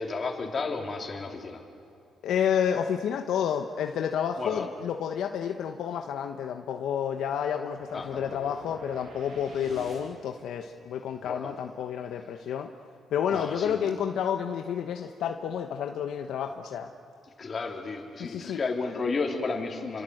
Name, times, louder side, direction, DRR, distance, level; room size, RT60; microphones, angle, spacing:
voice 1, 0.0-1.6 4.4-4.7 7.9-8.6 9.7-9.9 11.2-11.5 13.3-13.7 17.4-20.0, left 4 dB, 40° left, 2 dB, 3.8 m, -33 dB
voice 2, 2.2-12.7 13.1-16.9 18.2-18.6, left 8 dB, 75° left, 5 dB, 1.1 m, -30 dB
sound 1, 7.8-10.4, right 2 dB, 90° right, 7.9 m, -50 dB
28.0 x 25.5 x 8.0 m, 2.6 s
cardioid pair, 90°, 0 cm